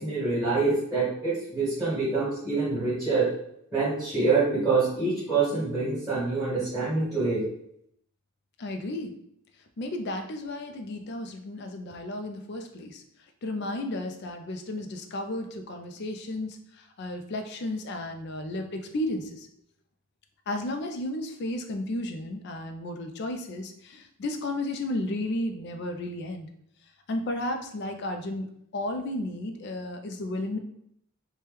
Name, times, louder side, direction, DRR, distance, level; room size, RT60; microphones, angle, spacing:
voice 1, 0.0-3.3 3.7-7.4, right 3 dB, 5° right, -9 dB, 1.4 m, -26 dB
voice 2, 8.6-9.1 9.8-13.0 13.4-19.5 20.5-26.5 27.1-30.6, left 1 dB, 50° left, 6 dB, 0.4 m, -33 dB
3.0 x 2.2 x 3.3 m, 0.73 s
head